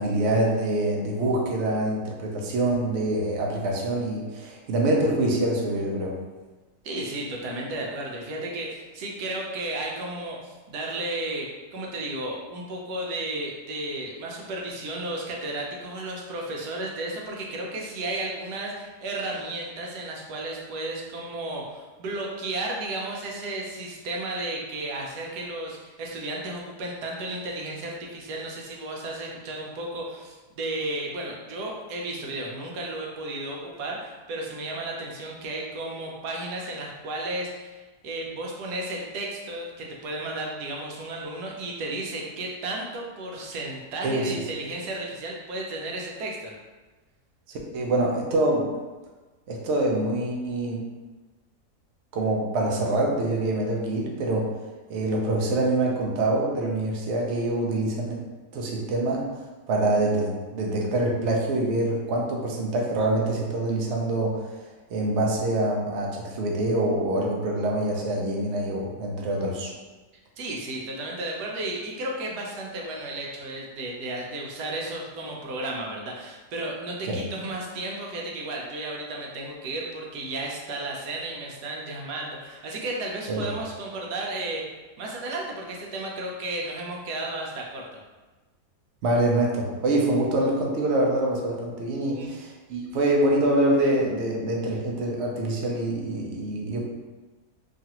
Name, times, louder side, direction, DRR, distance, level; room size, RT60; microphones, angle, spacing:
voice 1, 0.0-6.1 44.0-44.4 47.5-48.7 49.5-50.8 52.1-54.5 54.9-58.2 58.5-69.7 77.1-77.2 83.3-83.4 89.0-96.8, right 1 dB, 65° right, -1 dB, 0.7 m, -25 dB
voice 2, 6.8-46.5 70.4-84.6 85.0-87.9 92.0-92.3, right 2 dB, 90° right, -1 dB, 1.2 m, -33 dB
3.1 x 2.4 x 2.8 m, 1.2 s
omnidirectional pair, 1.7 m